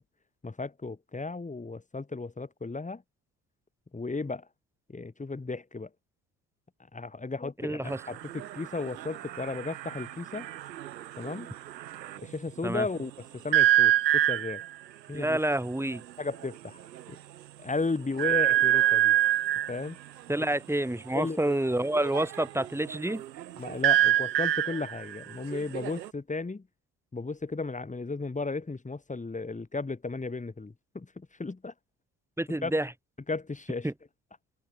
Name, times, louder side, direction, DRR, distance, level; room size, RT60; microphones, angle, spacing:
voice 1, 0.4-3.0 3.9-4.5 4.9-5.9 6.9-10.5 11.2-11.5 12.2-14.6 15.1-15.4 16.2-16.8 17.1-17.2 17.6-19.2 19.7-20.0 21.1-21.6 23.6-26.7 27.1-31.7 32.6-32.7 33.3-33.9, left 3 dB, 15° left, 1.9 m, -34 dB
voice 2, 7.6-8.0 12.6-12.9 15.1-16.0 20.3-23.2 32.4-32.9 33.8-33.9, right 1 dB, 5° right, 2.1 m, -28 dB
sound 1, 7.9-12.3 13.5-14.7 15.9-16.0 16.3-16.5 16.9-17.0 18.2-19.8 21.9-26.1, right 13 dB, 85° right, 1.1 m, -26 dB
figure-of-eight pair, 45°, 49 cm